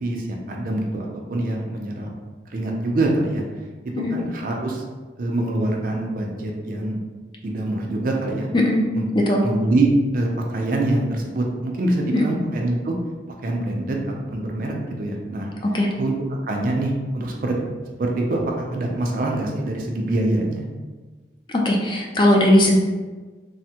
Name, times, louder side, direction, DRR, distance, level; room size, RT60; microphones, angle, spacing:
voice 1, 0.0-2.1 2.5-3.4 4.0-4.8 5.2-7.0 7.4-8.5 8.9-9.1 9.4-12.9 13.4-14.0 14.3-15.5 16.0-16.1 16.4-17.6 18.0-20.6, right 2 dB, 50° right, 0 dB, 0.4 m, -24 dB
voice 2, 21.5-22.8, left 1 dB, 25° left, -1 dB, 0.3 m, -18 dB
3.3 x 2.0 x 2.8 m, 1.3 s
head